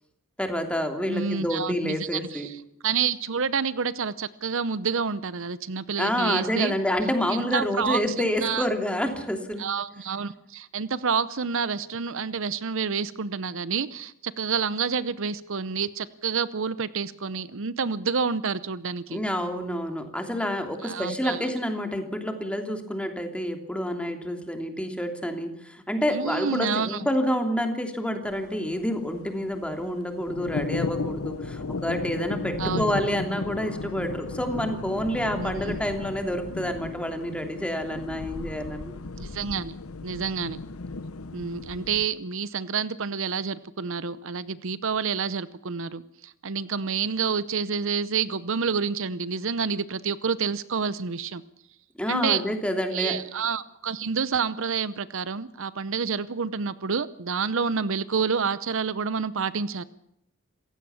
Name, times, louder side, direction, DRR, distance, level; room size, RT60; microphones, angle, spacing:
voice 1, 0.4-2.5 6.0-9.7 19.1-38.9 52.0-53.1, equal, 5° left, 5 dB, 3.0 m, -28 dB
voice 2, 1.1-6.7 7.3-8.7 9.6-19.2 20.8-21.5 26.1-27.1 32.6-32.9 35.4-35.8 39.2-39.7 40.0-40.6 41.3-51.4 52.1-52.4 52.9-59.8, right 6 dB, 65° right, 16 dB, 0.8 m, -28 dB
sound 1, 28.2-42.1, left 3 dB, 85° left, 0.9 m, -35 dB
27.0 x 16.0 x 7.2 m, 0.79 s
head